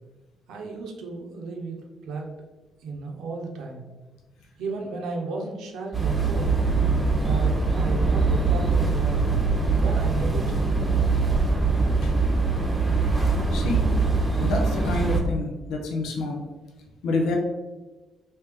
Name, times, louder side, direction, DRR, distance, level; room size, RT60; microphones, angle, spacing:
voice 1, 0.5-2.5 2.8-3.8 4.6-6.6 7.2-9.2 9.7-10.6, right 3 dB, 85° right, 1 dB, 0.7 m, -34 dB
sound 1, 5.9-15.2, right 4 dB, 15° right, 0.9 m, -22 dB
voice 2, 13.5-13.9 14.4-16.4 17.0-17.4, left 2 dB, 85° left, 1 dB, 0.6 m, -28 dB
3.2 x 2.7 x 3.5 m, 1.2 s
cardioid pair, 90°, 0 cm